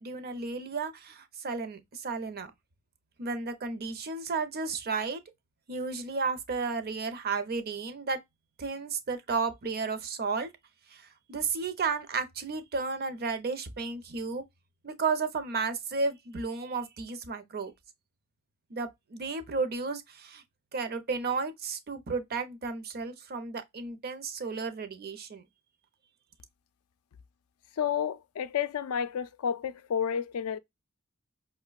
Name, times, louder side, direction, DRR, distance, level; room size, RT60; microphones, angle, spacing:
voice 1, 0.0-2.5 3.2-5.2 5.7-8.2 8.6-10.5 10.9-14.4 14.8-17.7 18.7-20.4 20.7-25.4, right 4 dB, 45° right, 0.6 m, -33 dB
voice 2, 27.8-30.6, left 8 dB, 85° left, 0.4 m, -31 dB
5.0 x 2.1 x 2.3 m
head